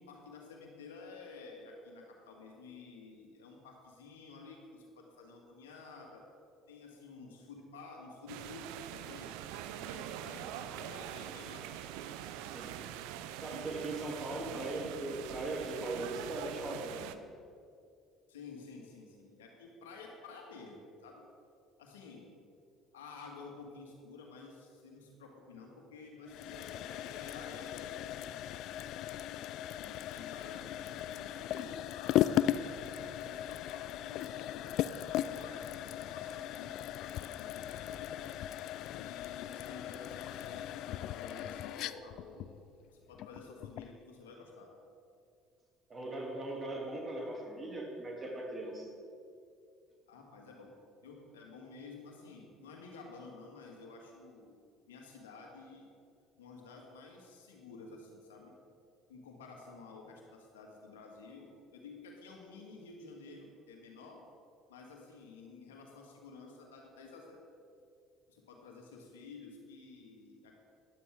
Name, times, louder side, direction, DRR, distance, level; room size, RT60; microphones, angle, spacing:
voice 1, 0.0-6.2 6.7-11.7 18.3-21.2 21.8-22.3 22.9-28.6 29.7-34.7 35.1-38.3 38.9-42.5 42.9-44.7 50.1-50.7 51.0-54.6 54.9-55.9 56.4-58.5 59.1-64.2 64.7-67.4 68.3-70.6, left 4 dB, 90° left, 0 dB, 1.8 m, -52 dB
sound 1, 8.3-17.2, right 11 dB, 75° right, 0.5 m, -44 dB
voice 2, 13.4-17.1 45.9-48.9, right 2 dB, 30° right, 0 dB, 2.8 m, -39 dB
sound 2, 26.3-44.0, left 12 dB, 65° left, 0.3 m, -37 dB
13.0 x 11.5 x 3.7 m, 2.4 s
hypercardioid pair, 65°, 0 cm